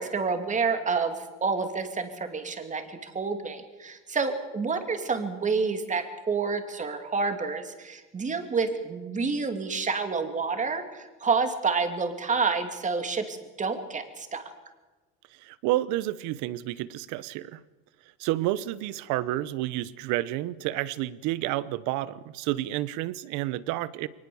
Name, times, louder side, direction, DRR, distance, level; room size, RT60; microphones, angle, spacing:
voice 1, 0.0-14.4, right 4 dB, 25° right, 6 dB, 2.7 m, -29 dB
voice 2, 15.4-17.6 18.2-24.1, right 15 dB, 70° right, 17 dB, 1.0 m, -30 dB
23.0 x 19.5 x 7.1 m, 1.2 s
cardioid pair, 120°, 31 cm